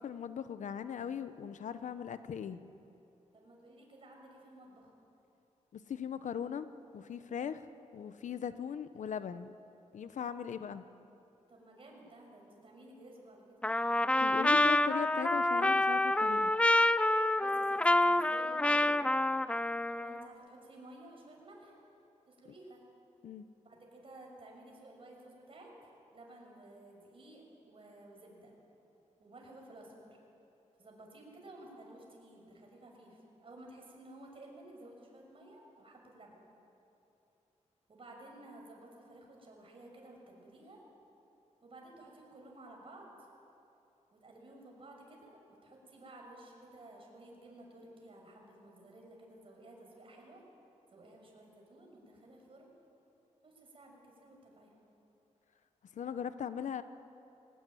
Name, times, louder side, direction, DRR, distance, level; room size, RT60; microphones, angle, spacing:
voice 1, 0.0-2.6 5.7-7.6 7.9-9.5 9.9-10.8 14.2-16.5 23.2-23.5 55.9-56.8, left 8 dB, 85° left, 12 dB, 0.9 m, -39 dB
voice 2, 3.3-4.9 10.4-10.5 11.5-13.6 17.4-19.0 19.9-21.8 22.3-22.8 23.6-25.7 26.1-28.5 29.2-30.2 30.8-36.4 37.9-40.8 41.6-43.3 44.1-50.4 50.9-52.7 53.4-54.7, right 1 dB, 45° right, 0 dB, 6.3 m, -54 dB
Trumpet, 13.6-20.2, left 1 dB, 10° left, 0.5 m, -28 dB
22.0 x 19.0 x 9.3 m, 2.8 s
wide cardioid pair, 110°, 12 cm